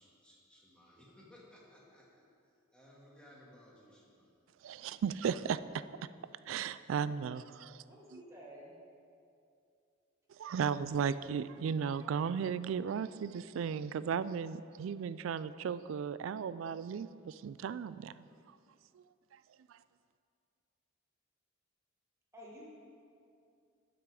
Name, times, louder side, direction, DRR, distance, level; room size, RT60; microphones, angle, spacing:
voice 1, 0.0-2.2 2.7-4.4 5.3-5.7, equal, 5° left, 1.8 m, -59 dB
voice 2, 4.6-5.6 6.5-7.8 10.4-18.3 18.9-19.0 19.7-19.8, right 7 dB, 75° right, 0.3 m, -35 dB
voice 3, 7.8-8.7 22.3-22.6, equal, 15° right, 1.3 m, -51 dB
11.5 x 5.9 x 4.8 m
head